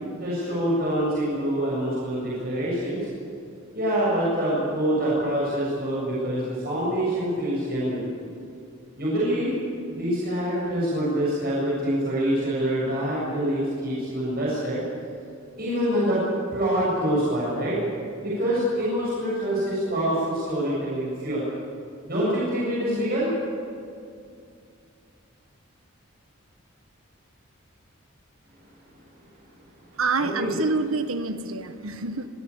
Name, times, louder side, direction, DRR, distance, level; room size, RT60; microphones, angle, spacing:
voice 1, 0.0-3.0 3.7-8.0 9.0-9.5 9.9-14.8 15.6-16.2 16.5-17.8 18.2-21.4 22.0-23.3 30.2-30.6, right 1 dB, 50° right, -7 dB, 7.4 m, -25 dB
voice 2, 30.0-32.3, right 3 dB, 90° right, 9 dB, 1.5 m, -27 dB
25.5 x 16.5 x 8.6 m, 2.4 s
head